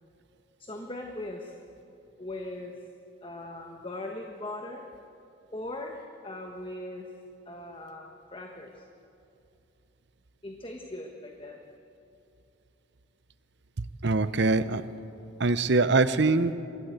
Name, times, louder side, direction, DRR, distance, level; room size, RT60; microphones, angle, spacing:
voice 1, 0.6-1.6 2.2-2.7 3.2-4.8 5.5-7.1 7.4-8.8 10.4-11.6, left 1 dB, 25° left, 2 dB, 1.3 m, -39 dB
voice 2, 13.8-14.8 15.4-16.5, right 3 dB, 60° right, 13 dB, 0.8 m, -23 dB
24.0 x 15.5 x 8.2 m, 2.7 s
head